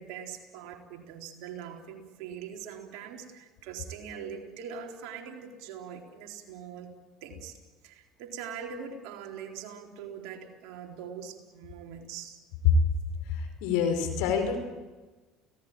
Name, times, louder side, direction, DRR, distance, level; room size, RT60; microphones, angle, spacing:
voice 1, 0.0-6.9 7.2-7.6 7.8-12.4, right 7 dB, 70° right, 2 dB, 4.0 m, -42 dB
voice 2, 13.3-14.6, left 9 dB, 75° left, 6 dB, 5.1 m, -26 dB
30.0 x 18.0 x 9.0 m, 1.3 s
hypercardioid pair, 75°, 0 cm